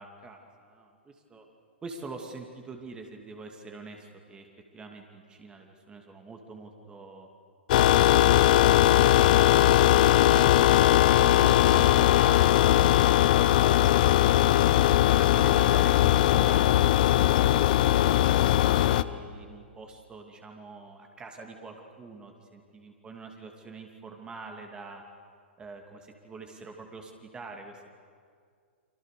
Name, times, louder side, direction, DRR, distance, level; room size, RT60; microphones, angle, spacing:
voice 1, 0.0-0.9 1.3-1.4 1.8-4.5 4.7-7.3 7.9-9.0 9.3-14.1 14.6-25.0 25.6-27.9, right 3 dB, 15° right, 3 dB, 2.7 m, -45 dB
sound 1, 7.7-19.0, left 13 dB, 45° left, 0.8 m, -20 dB
30.0 x 25.0 x 6.8 m, 2.1 s
figure-of-eight pair, 110°, 6 cm